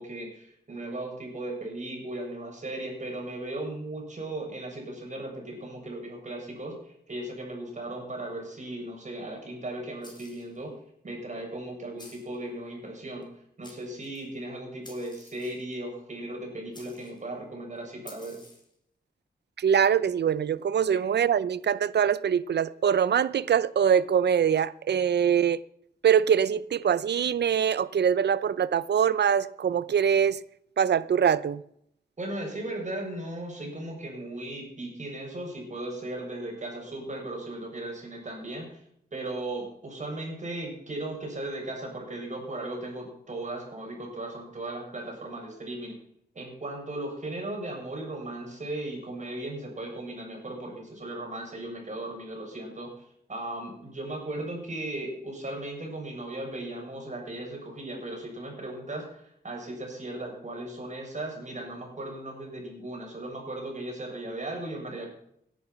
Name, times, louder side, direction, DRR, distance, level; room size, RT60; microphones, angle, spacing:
voice 1, 0.0-10.8 11.0-13.3 13.6-18.4 32.2-38.8 39.1-45.9 46.3-52.9 53.3-65.1, right 1 dB, 45° right, 6.8 m, -37 dB
sound 1, 10.0-10.6 12.0-12.4 13.2-13.3 13.6-14.3 14.8-15.7 16.7-17.2 18.1-18.7, left 2 dB, 25° left, 4.8 m, -51 dB
voice 2, 19.6-25.6 26.0-30.4 30.8-31.6, right 8 dB, 90° right, 0.6 m, -23 dB
17.5 x 11.0 x 5.9 m
wide cardioid pair, 90°, 17 cm